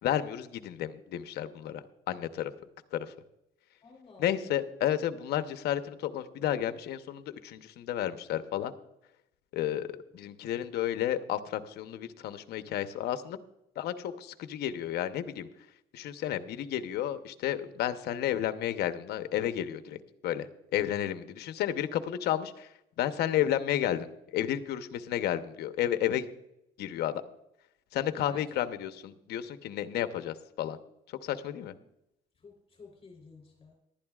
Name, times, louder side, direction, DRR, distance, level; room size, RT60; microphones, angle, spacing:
voice 1, 0.0-2.5 2.9-3.1 4.2-8.7 9.5-9.9 10.1-13.4 13.8-15.5 15.9-22.7 23.0-24.1 24.3-26.3 26.8-27.2 27.9-30.8 31.2-31.7, left 11 dB, 75° left, 10 dB, 0.9 m, -32 dB
voice 2, 3.8-4.3 28.3-28.6 32.4-33.8, left 4 dB, 35° left, 1 dB, 3.4 m, -52 dB
18.5 x 12.0 x 2.4 m, 0.83 s
cardioid pair, 110°, 17 cm